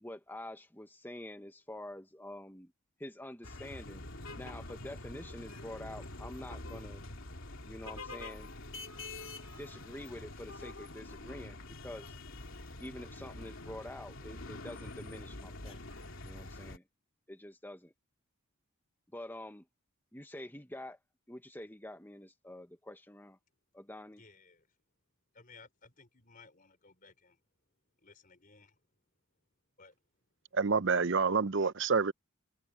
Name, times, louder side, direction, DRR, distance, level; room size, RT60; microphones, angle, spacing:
voice 1, 0.0-2.7 3.0-4.0 4.3-7.0 7.6-8.5 9.6-12.1 12.8-15.8 16.2-16.8 17.3-17.9 19.1-19.6 20.1-21.0 21.3-23.4 23.7-24.2, left 1 dB, 10° left, 1.3 m, -47 dB
sound 1, 3.4-16.8, left 2 dB, 65° left, 3.1 m, -46 dB
voice 2, 24.2-24.7 25.3-27.4 28.0-28.7 29.8-30.0, left 4 dB, 40° left, 4.5 m, -58 dB
voice 3, 30.5-32.1, right 5 dB, 60° right, 0.8 m, -28 dB
head